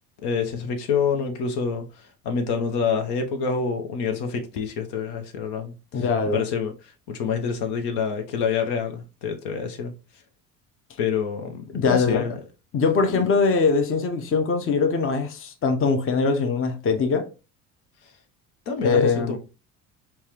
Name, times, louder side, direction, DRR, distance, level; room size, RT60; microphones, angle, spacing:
voice 1, 0.2-6.7 7.1-9.9 11.0-12.4 13.1-13.3 18.7-19.4, left 6 dB, 60° left, 0.8 m, -27 dB
voice 2, 5.9-6.4 11.7-12.2 12.7-17.3 18.8-19.4, left 4 dB, 30° left, 0.7 m, -22 dB
4.5 x 2.3 x 2.8 m
hypercardioid pair, 55°, 46 cm